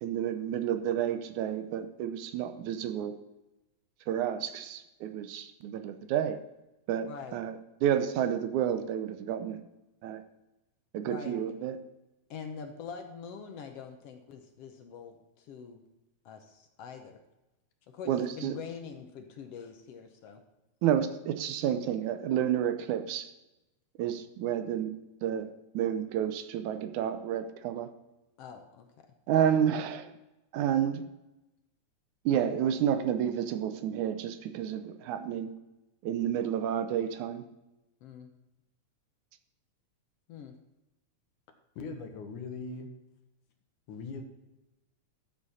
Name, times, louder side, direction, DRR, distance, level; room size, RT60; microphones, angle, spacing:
voice 1, 0.0-3.1 4.1-6.4 6.9-7.5 7.8-9.6 10.0-10.2 10.9-11.8 18.1-18.6 20.8-23.3 24.0-24.9 25.2-25.5 25.7-27.9 29.3-30.1 30.5-31.0 32.3-35.5 36.0-37.4, right 9 dB, 85° right, 9 dB, 2.2 m, -30 dB
voice 2, 7.1-7.4 11.0-11.4 12.3-15.8 16.3-17.2 17.9-20.4 28.4-29.1 38.0-38.3 40.3-40.5, left 6 dB, 70° left, 5 dB, 1.7 m, -44 dB
voice 3, 41.8-42.9 43.9-44.2, left 4 dB, 85° left, 4 dB, 2.8 m, -40 dB
13.0 x 7.5 x 4.2 m, 0.98 s
omnidirectional pair, 3.4 m